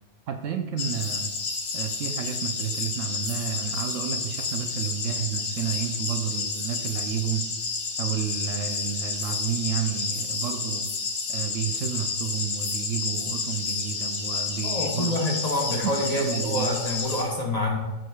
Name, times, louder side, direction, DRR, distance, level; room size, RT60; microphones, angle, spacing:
voice 1, 0.3-1.3 1.7-7.5 8.0-10.9 11.3-15.2 15.8-16.7, right 8 dB, 70° right, 6 dB, 0.9 m, -31 dB
sound 1, 0.8-17.2, left 4 dB, 85° left, 1.5 m, -30 dB
voice 2, 14.6-17.8, left 1 dB, 30° left, -1 dB, 1.1 m, -27 dB
14.0 x 4.7 x 2.3 m, 1.1 s
omnidirectional pair, 1.5 m